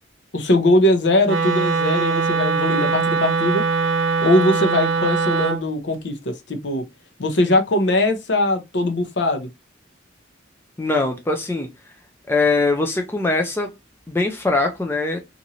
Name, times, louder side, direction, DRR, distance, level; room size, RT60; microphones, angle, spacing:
voice 1, 0.3-3.6 4.2-6.8 7.2-9.5, left 1 dB, 65° left, 0.7 m, -20 dB
Wind instrument woodwind instrument, 1.2-5.6, right 4 dB, 80° right, 0.4 m, -21 dB
voice 2, 10.8-11.7 12.3-13.7 14.1-15.2, left 3 dB, 10° left, 0.4 m, -21 dB
2.9 x 2.5 x 2.7 m
head